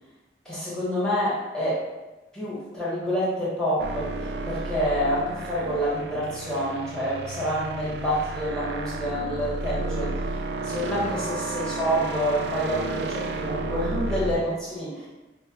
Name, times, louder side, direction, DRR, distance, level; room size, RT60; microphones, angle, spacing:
voice 1, 0.4-1.8 2.3-10.1 10.6-15.1, equal, 5° left, -9 dB, 1.2 m, -27 dB
sound 1, 3.8-14.4, right 3 dB, 65° right, 0.3 m, -32 dB
4.6 x 2.1 x 3.0 m, 1.1 s
head